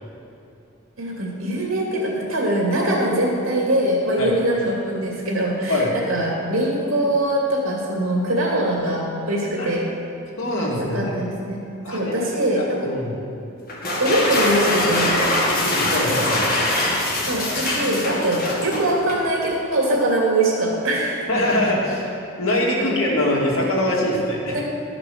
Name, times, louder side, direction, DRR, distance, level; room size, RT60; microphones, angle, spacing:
voice 1, 1.0-9.8 10.8-11.6 11.9-12.9 14.0-15.2 17.3-21.2 22.8-23.0 24.5-24.6, right 1 dB, 80° right, -2 dB, 2.6 m, -22 dB
voice 2, 10.4-11.1 11.8-12.1 12.6-13.2 15.6-16.5 21.3-22.1 22.4-24.6, left 1 dB, 85° left, -3 dB, 2.2 m, -23 dB
sound 1, 13.7-19.3, left 1 dB, 45° left, 1.9 m, -23 dB
12.5 x 5.9 x 6.4 m, 2.8 s
head